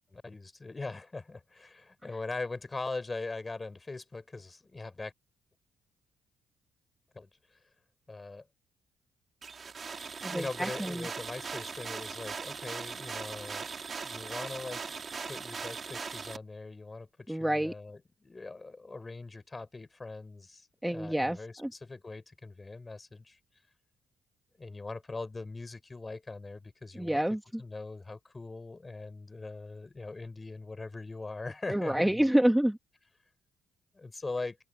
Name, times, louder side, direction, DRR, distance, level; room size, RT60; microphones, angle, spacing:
voice 1, 0.1-5.1 7.1-7.3 8.1-8.4 10.3-13.7 14.0-14.8 15.3-21.5 21.8-23.4 24.6-27.2 27.6-32.1 33.9-34.6, left 3 dB, 25° left, 5.5 m, -41 dB
sound 1, 9.4-16.4, right 5 dB, 40° right, 2.5 m, -39 dB
voice 2, 10.2-11.1 17.3-17.7 20.8-21.7 26.9-27.6 31.7-32.8, right 1 dB, 5° right, 1.6 m, -28 dB
cardioid pair, 90°, 0 cm